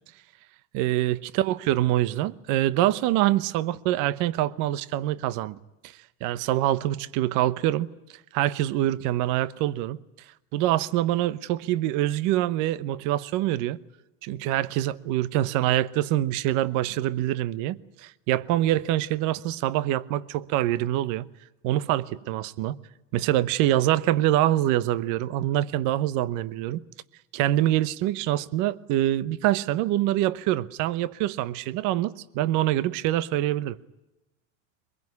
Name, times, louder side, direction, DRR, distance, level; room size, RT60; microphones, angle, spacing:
voice 1, 0.7-5.6 6.2-7.9 8.3-10.0 10.5-13.8 14.2-21.2 21.6-22.8 23.1-26.8 27.3-33.8, right 14 dB, 55° right, 0.9 m, -25 dB
23.0 x 22.0 x 9.6 m
supercardioid pair, 140°, 38 cm